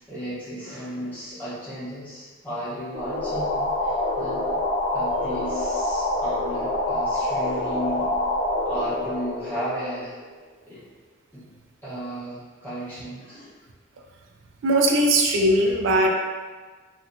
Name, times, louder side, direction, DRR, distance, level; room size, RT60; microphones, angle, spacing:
voice 1, 0.0-4.5 4.9-8.1 8.6-10.2 10.7-10.8 11.3-11.4 11.8-13.6, equal, 10° left, -11 dB, 0.8 m, -34 dB
sound 1, 2.9-10.3, left 1 dB, 35° left, 0.3 m, -26 dB
voice 2, 14.6-16.1, right 1 dB, 80° right, 1 dB, 0.3 m, -19 dB
2.7 x 2.1 x 2.5 m, 1.4 s
head